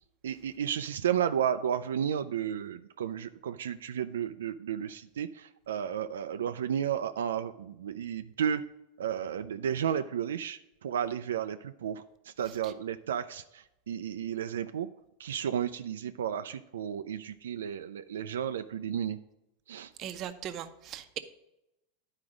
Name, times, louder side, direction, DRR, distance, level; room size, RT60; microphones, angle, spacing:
voice 1, 0.2-8.6 9.0-12.0 12.4-14.9 15.2-19.2 19.7-19.9, right 9 dB, 90° right, 9 dB, 0.4 m, -33 dB
voice 2, 20.0-21.2, right 10 dB, 40° right, 8 dB, 0.8 m, -39 dB
10.5 x 4.9 x 5.0 m, 0.89 s
hypercardioid pair, 115°, 0 cm